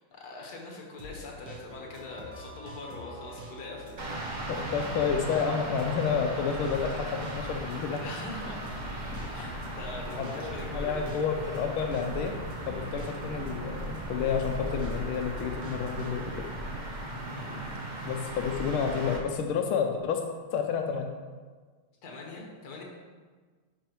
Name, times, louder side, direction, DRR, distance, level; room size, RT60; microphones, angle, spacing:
voice 1, 0.1-4.4 8.0-8.6 9.3-11.1 17.2-17.7 22.0-22.8, left 3 dB, 50° left, -1 dB, 1.7 m, -43 dB
sound 1, 1.0-16.3, right 1 dB, 75° right, 2.2 m, -46 dB
sound 2, 4.0-19.2, right 1 dB, 55° right, 0.5 m, -37 dB
voice 2, 4.5-8.0 10.2-12.3 12.7-16.5 18.0-20.2 20.5-21.1, left 6 dB, 85° left, 4 dB, 1.5 m, -30 dB
sound 3, 9.2-9.7, left 3 dB, 65° left, 1.1 m, -43 dB
10.0 x 5.4 x 3.0 m, 1.5 s
omnidirectional pair, 2.3 m